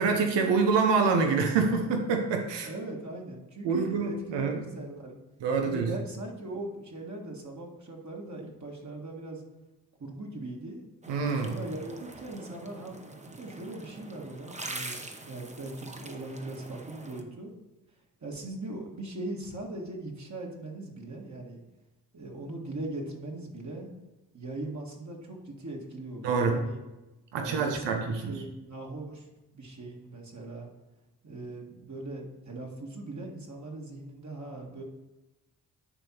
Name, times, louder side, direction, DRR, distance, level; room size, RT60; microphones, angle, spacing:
voice 1, 0.0-2.7 3.6-4.6 5.4-5.9 11.1-11.6 26.2-26.6 27.3-28.3, right 4 dB, 85° right, 4 dB, 0.9 m, -26 dB
voice 2, 2.6-5.2 5.6-9.4 10.0-10.8 11.4-17.5 18.2-21.6 22.1-23.9 24.3-26.8 27.4-29.3 29.5-30.7 31.2-34.8, right 2 dB, 40° right, -1 dB, 1.7 m, -40 dB
sound 1, 11.0-17.2, right 2 dB, 15° right, 0.9 m, -44 dB
10.0 x 3.5 x 4.4 m, 1.0 s
supercardioid pair, 45°, 42 cm